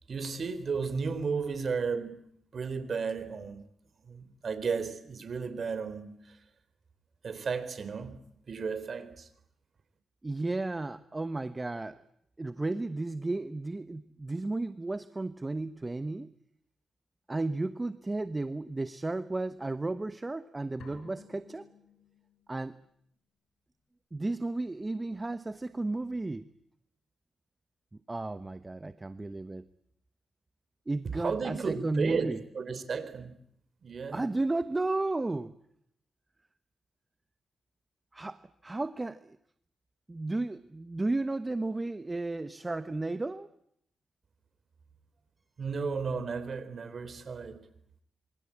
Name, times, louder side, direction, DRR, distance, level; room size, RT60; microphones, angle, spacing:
voice 1, 0.1-2.2 2.5-3.6 4.1-6.3 7.2-8.2 8.5-9.3 31.2-33.3 33.8-34.2 45.6-47.6, right 5 dB, 55° right, 3.9 m, -34 dB
voice 2, 10.2-12.0 12.4-16.3 17.3-21.7 22.5-22.8 24.1-26.5 28.1-29.7 30.9-32.4 34.1-35.6 38.1-39.4 40.1-43.5, right 2 dB, 20° right, 1.1 m, -33 dB
sound 1, 20.8-22.6, left 5 dB, 80° left, 7.2 m, -54 dB
27.0 x 24.5 x 8.7 m
cardioid pair, 80°, 0 cm